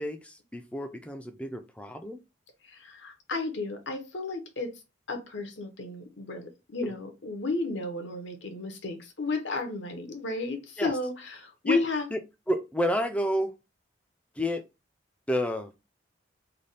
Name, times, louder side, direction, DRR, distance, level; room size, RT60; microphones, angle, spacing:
voice 1, 0.0-2.2 10.8-10.9 11.6-11.8 12.1-12.2 12.5-13.5 14.4-14.7 15.3-15.7, equal, 5° left, 0.3 m, -30 dB
voice 2, 2.7-4.7 5.1-12.1, left 3 dB, 75° left, 0.9 m, -32 dB
3.3 x 2.2 x 4.0 m
head